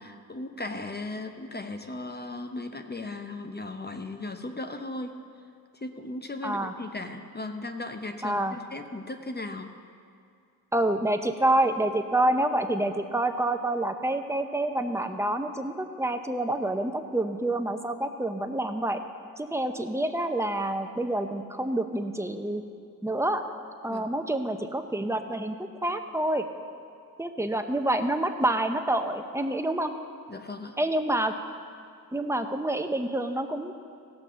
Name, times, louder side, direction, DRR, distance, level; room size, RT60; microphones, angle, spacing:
voice 1, 0.0-5.2 5.8-9.7 23.9-24.1 30.3-30.8, left 2 dB, 25° left, 6 dB, 0.8 m, -37 dB
voice 2, 6.4-6.7 8.2-8.6 10.7-19.0 19.4-22.6 23.0-23.4 23.8-25.5 25.8-26.4 27.2-29.9 30.8-31.3 32.1-33.7, right 1 dB, 5° right, 6 dB, 0.9 m, -27 dB
16.0 x 6.0 x 7.0 m, 2.4 s
cardioid pair, 70°, 38 cm